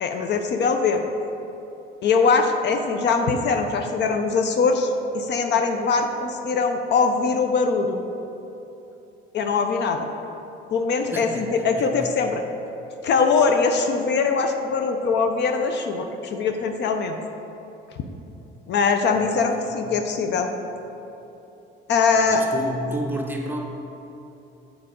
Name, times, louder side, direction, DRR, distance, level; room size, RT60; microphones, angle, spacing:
voice 1, 0.0-1.0 2.0-4.9 5.1-8.0 9.3-10.1 10.7-12.4 13.0-17.2 18.7-20.5 21.9-22.4, left 4 dB, 55° left, 5 dB, 0.5 m, -22 dB
voice 2, 11.1-12.1 19.1-19.3 19.7-19.9 22.1-23.6, right 1 dB, 10° right, 0 dB, 0.8 m, -32 dB
6.8 x 4.0 x 5.1 m, 3.0 s
cardioid pair, 120°, 21 cm